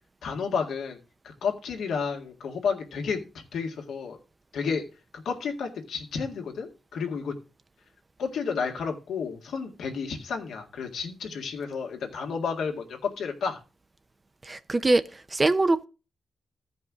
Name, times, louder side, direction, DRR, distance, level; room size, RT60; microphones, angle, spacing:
voice 1, 0.2-1.0 1.2-4.2 4.5-4.8 5.1-7.4 8.2-13.6, left 5 dB, 85° left, 1.8 m, -31 dB
voice 2, 14.4-15.9, right 2 dB, 30° right, 0.6 m, -23 dB
14.5 x 5.3 x 3.6 m
cardioid pair, 70°, 0 cm